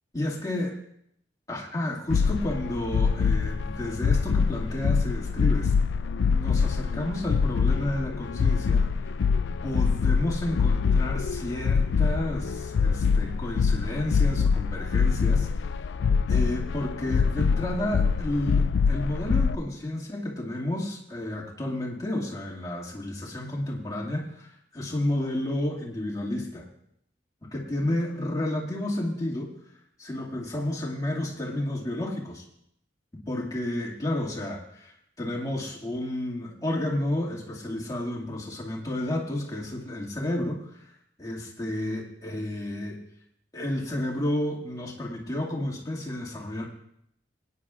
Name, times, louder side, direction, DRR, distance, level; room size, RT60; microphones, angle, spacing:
voice 1, 0.1-0.8 1.5-5.7 6.3-8.8 9.6-15.5 16.3-26.7 27.4-29.6 30.0-32.4 33.3-40.9 41.2-43.0 43.5-46.7, left 1 dB, 20° left, -3 dB, 2.1 m, -31 dB
sound 1, 2.1-19.5, left 5 dB, 75° left, 0.4 m, -24 dB
24.5 x 9.5 x 2.4 m, 0.73 s
head